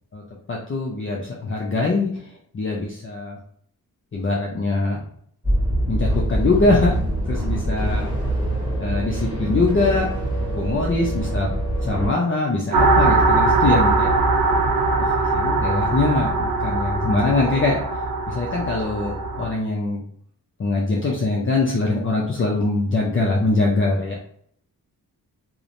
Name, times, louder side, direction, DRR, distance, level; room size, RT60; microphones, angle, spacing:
voice 1, 0.5-3.4 4.1-5.0 5.9-7.0 7.3-8.1 8.8-10.1 10.5-11.5 11.8-14.1 15.0-20.0 20.6-24.2, left 3 dB, 35° left, -3 dB, 0.5 m, -23 dB
sound 1, 5.4-12.1, right 1 dB, 10° right, 1.1 m, -24 dB
sound 2, 12.7-19.5, right 3 dB, 65° right, 0.5 m, -20 dB
3.0 x 2.0 x 2.5 m, 0.63 s
wide cardioid pair, 110°, 38 cm